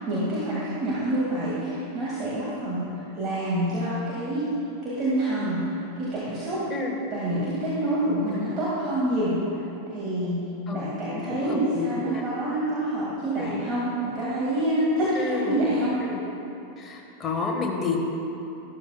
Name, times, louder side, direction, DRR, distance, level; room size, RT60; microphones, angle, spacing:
voice 1, 0.0-2.9 3.2-4.4 4.8-6.7 7.1-9.4 9.9-10.5 10.7-15.9, right 1 dB, 30° right, -8 dB, 2.1 m, -27 dB
voice 2, 10.7-12.2 13.4-13.6 15.1-15.6 16.0-16.2 16.8-18.0, left 4 dB, 20° left, 0 dB, 1.5 m, -31 dB
13.0 x 12.5 x 2.3 m, 2.9 s
figure-of-eight pair, 90°, 0 cm